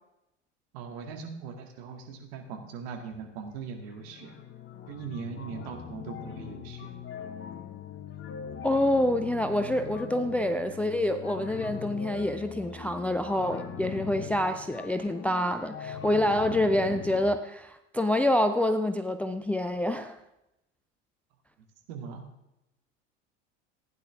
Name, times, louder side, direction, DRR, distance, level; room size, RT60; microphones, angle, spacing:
voice 1, 0.7-4.4 4.9-7.0 21.9-22.2, right 5 dB, 55° right, 3 dB, 2.1 m, -40 dB
sound 1, 3.1-3.6 3.8-17.3, left 8 dB, 30° left, 1.1 m, -41 dB
voice 2, 8.6-20.2, left 1 dB, 5° left, 8 dB, 0.4 m, -27 dB
15.5 x 9.8 x 3.7 m, 0.89 s
figure-of-eight pair, 75°, 36 cm